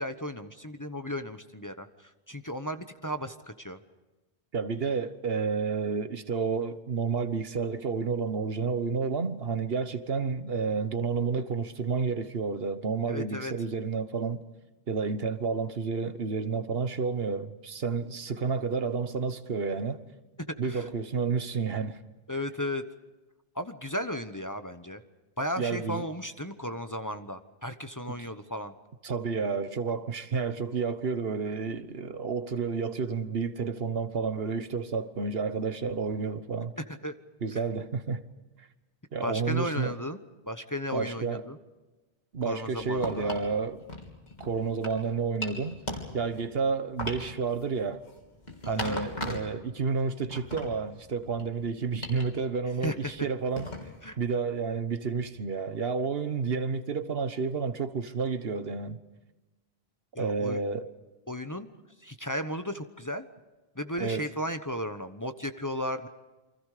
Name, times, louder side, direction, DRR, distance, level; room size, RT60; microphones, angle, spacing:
voice 1, 0.0-3.8 13.1-13.5 20.5-20.8 22.3-22.8 23.5-25.0 25.4-28.7 37.0-37.1 39.2-40.2 40.5-41.6 42.4-43.3 48.7-49.0 52.8-53.3 54.0-54.2 60.1-60.6 61.3-61.7 62.0-63.3 63.8-66.1, equal, 20° left, 1.0 m, -35 dB
voice 2, 4.5-14.4 14.9-20.0 20.6-22.0 25.6-26.1 28.1-28.2 29.0-36.7 37.4-38.2 39.1-40.0 40.9-41.5 42.3-43.8 44.4-45.8 46.1-48.0 48.7-53.7 54.2-59.0 60.2-60.9 64.0-64.2, right 5 dB, 70° right, 1.4 m, -30 dB
sound 1, 42.8-43.5 43.9-45.0 45.4-46.5 47.0-49.6 50.0-51.5 52.0-52.3 52.8-53.1 53.6-54.1, left 1 dB, 45° left, 3.6 m, -38 dB
28.5 x 24.5 x 5.0 m
omnidirectional pair, 1.0 m